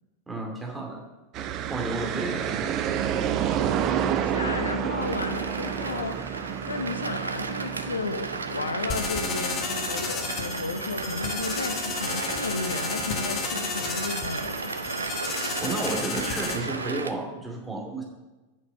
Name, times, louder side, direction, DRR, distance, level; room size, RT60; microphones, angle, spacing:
voice 1, 0.3-1.0 1.7-2.8 15.6-18.0, right 2 dB, 10° right, -1 dB, 2.5 m, -32 dB
sound 1, 1.3-16.8, right 9 dB, 35° right, 0.7 m, -32 dB
voice 2, 4.2-14.7, left 3 dB, 75° left, 8 dB, 0.7 m, -33 dB
sound 2, 5.0-17.1, right 4 dB, 75° right, 0.6 m, -35 dB
sound 3, 8.9-16.6, left 4 dB, 30° left, 1.4 m, -32 dB
8.6 x 6.5 x 6.4 m, 1.1 s
figure-of-eight pair, 90°, 0 cm